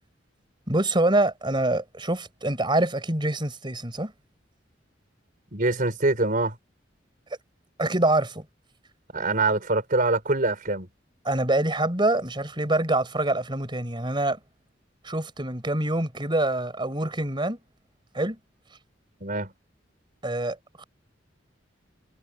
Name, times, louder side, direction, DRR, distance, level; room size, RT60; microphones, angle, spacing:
voice 1, 0.7-4.1 7.8-8.4 11.2-14.4 15.0-17.6 18.1-18.4 20.2-20.8, right 2 dB, 25° right, 4.1 m, -25 dB
voice 2, 5.5-6.5 9.1-10.9 19.2-19.5, right 2 dB, 45° right, 4.8 m, -24 dB
head